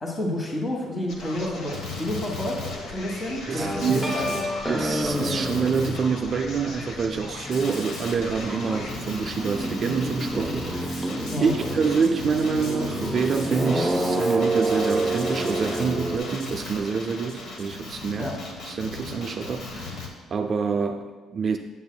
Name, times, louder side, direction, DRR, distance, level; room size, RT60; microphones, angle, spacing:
voice 1, 0.0-2.6 2.9-4.5 11.3-11.5 18.2-18.3, left 1 dB, 25° left, -1 dB, 1.2 m, -30 dB
Male speech man speaking, 1.1-20.1, left 3 dB, 70° left, 1.2 m, -36 dB
voice 2, 3.5-4.3 4.7-18.3 18.7-21.6, right 5 dB, 40° right, 4 dB, 0.4 m, -27 dB
sound 1, 3.6-7.6 7.9-16.2, right 1 dB, ahead, 0.7 m, -29 dB
8.3 x 7.0 x 2.2 m, 1.3 s
cardioid pair, 130°, 0 cm